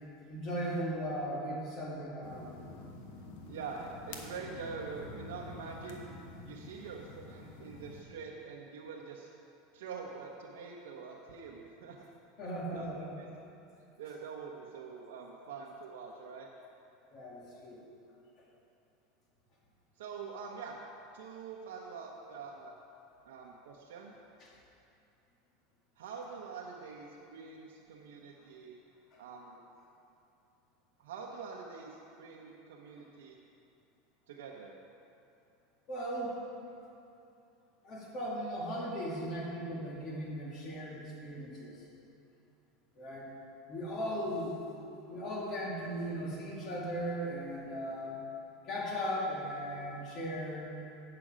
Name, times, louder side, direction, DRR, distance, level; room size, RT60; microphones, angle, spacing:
voice 1, 0.3-2.7 12.4-13.2 17.1-17.8 24.4-24.5 29.1-29.2 35.9-36.4 37.8-41.9 43.0-43.3 43.7-44.6 45.1-48.2 48.7-50.7, equal, 40° left, -4 dB, 2.1 m, -37 dB
sound 1, 2.2-8.0, left 3 dB, 70° left, 1.2 m, -48 dB
voice 2, 3.5-6.1 6.4-9.3 9.7-12.0 12.4-13.3 14.0-16.5 20.0-20.8 21.1-22.7 23.2-24.1 26.0-28.8 29.2-29.6 31.0-33.4 34.3-34.7, right 5 dB, 90° right, -3 dB, 0.8 m, -45 dB
8.6 x 6.8 x 5.0 m, 2.8 s
supercardioid pair, 130°, 0 cm